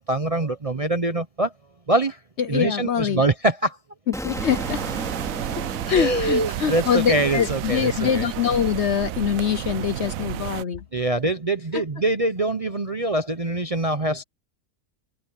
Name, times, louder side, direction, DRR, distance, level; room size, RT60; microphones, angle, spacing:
voice 1, 0.0-1.5 1.9-2.2 2.5-3.8 5.9-8.3 10.9-14.2, right 2 dB, 30° right, 0.6 m, -24 dB
voice 2, 2.4-3.2 4.1-4.8 5.7-10.8 11.7-11.8, left 8 dB, 55° left, 0.9 m, -24 dB
Explosion, 4.1-7.0, equal, ahead, 3.1 m, -34 dB
sound 1, 4.3-10.6, right 13 dB, 70° right, 1.0 m, -31 dB
open air
omnidirectional pair, 1.6 m